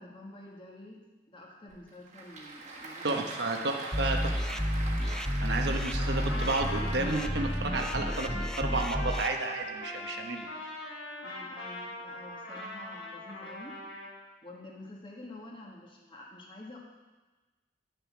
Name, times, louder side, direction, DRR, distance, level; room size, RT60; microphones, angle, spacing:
voice 1, 0.0-3.2 5.0-5.3 11.2-13.8 14.4-16.8, left 1 dB, 25° left, -2 dB, 1.6 m, -48 dB
Applause / Crowd, 1.7-7.9, right 2 dB, 40° right, 1.6 m, -43 dB
voice 2, 3.0-4.6 5.4-8.3 8.6-10.5, right 2 dB, 60° right, 3 dB, 1.0 m, -32 dB
sound 1, 3.9-9.3, equal, 5° left, 0.3 m, -31 dB
Trumpet, 5.9-14.1, left 1 dB, 80° left, 3.1 m, -41 dB
10.5 x 6.8 x 6.0 m, 1.2 s
head